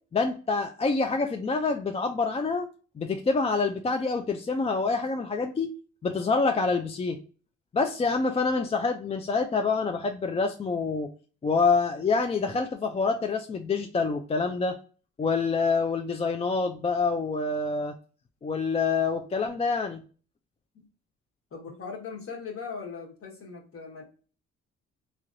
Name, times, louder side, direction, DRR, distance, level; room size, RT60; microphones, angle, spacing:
voice 1, 0.1-2.7 3.0-5.7 6.0-7.2 7.7-11.1 11.4-14.8 15.2-18.0 18.4-20.0, left 4 dB, 20° left, 6 dB, 0.3 m, -26 dB
voice 2, 21.5-24.0, left 5 dB, 50° left, 0 dB, 1.3 m, -39 dB
3.2 x 2.8 x 2.5 m, 0.37 s
cardioid pair, 90°, 30 cm